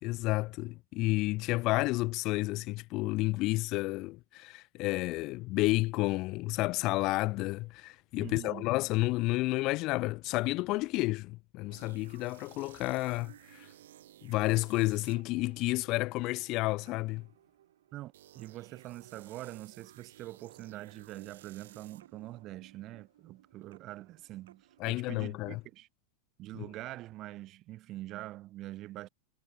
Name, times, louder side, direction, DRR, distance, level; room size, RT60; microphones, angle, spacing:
voice 1, 0.0-13.7 14.2-17.3 24.8-25.6 26.5-26.7, left 21 dB, 40° left, 2.2 m, -31 dB
voice 2, 8.2-8.7 17.9-25.9 26.4-29.1, right 16 dB, 35° right, 1.6 m, -44 dB
sound 1, 11.7-25.4, right 12 dB, 60° right, 4.2 m, -57 dB
figure-of-eight pair, 90°, 0 cm